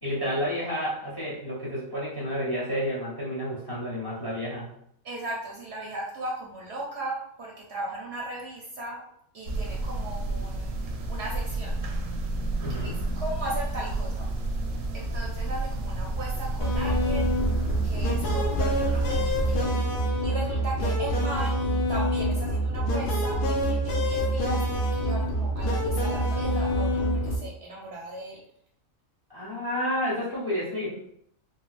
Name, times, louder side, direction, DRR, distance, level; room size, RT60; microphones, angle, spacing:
voice 1, 0.0-4.7 12.6-13.0 29.3-31.0, equal, 25° left, -5 dB, 0.6 m, -30 dB
voice 2, 5.0-9.0 9.3-10.8 11.1-11.8 12.8-14.3 14.9-17.3 17.8-19.7 20.2-21.6 21.9-28.4, right 1 dB, 60° right, -2 dB, 0.7 m, -37 dB
sound 1, 9.5-19.6, right 2 dB, 85° right, 1.0 m, -31 dB
sound 2, 16.6-27.4, equal, 65° left, 0.5 m, -26 dB
3.9 x 2.1 x 2.4 m, 0.70 s
omnidirectional pair, 1.4 m